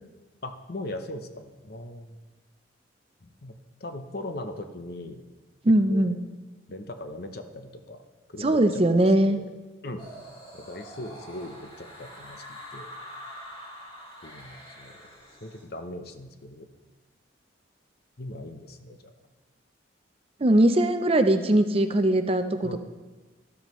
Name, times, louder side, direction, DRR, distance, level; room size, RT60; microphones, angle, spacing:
voice 1, 0.4-2.2 3.2-3.5 3.8-5.2 5.7-6.1 6.7-8.0 8.3-9.5 9.8-10.1 10.5-12.9 14.2-15.0 15.4-16.7 18.2-19.1 22.6-22.8, left 1 dB, 55° left, 7 dB, 0.8 m, -39 dB
voice 2, 5.6-6.2 8.4-9.4 20.4-22.8, right 1 dB, 30° right, 8 dB, 0.5 m, -21 dB
sound 1, 10.0-15.6, equal, 30° left, 3.4 m, -45 dB
13.0 x 12.5 x 3.1 m, 1.3 s
head